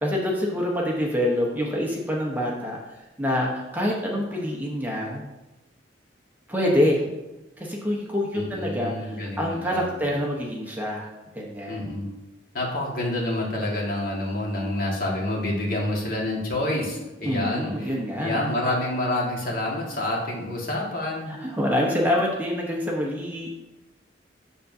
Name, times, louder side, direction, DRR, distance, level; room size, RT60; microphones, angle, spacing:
voice 1, 0.0-2.8 3.2-5.2 6.5-7.0 7.6-11.9 17.2-18.4 21.3-23.5, left 1 dB, 10° right, -2 dB, 0.9 m, -26 dB
voice 2, 8.3-9.9 11.7-12.1 12.5-21.3, left 1 dB, 50° left, -3 dB, 1.6 m, -28 dB
7.3 x 6.6 x 2.7 m, 1.0 s
head